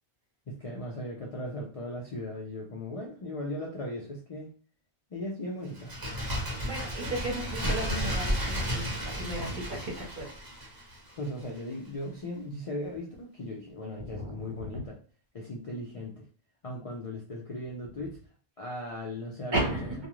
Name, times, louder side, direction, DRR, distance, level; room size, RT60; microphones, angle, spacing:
voice 1, 0.5-4.5 5.1-5.9 6.3-6.4 11.2-15.0 15.3-16.3 16.6-18.2 18.6-20.1, left 1 dB, 50° left, -2 dB, 0.4 m, -38 dB
Bird, 5.7-11.3 11.6-11.7, equal, 20° right, 0.8 m, -33 dB
voice 2, 6.6-10.3 14.0-14.8 19.5-20.1, right 1 dB, 45° right, -1 dB, 0.9 m, -34 dB
2.4 x 2.3 x 3.0 m, 0.40 s
omnidirectional pair, 1.2 m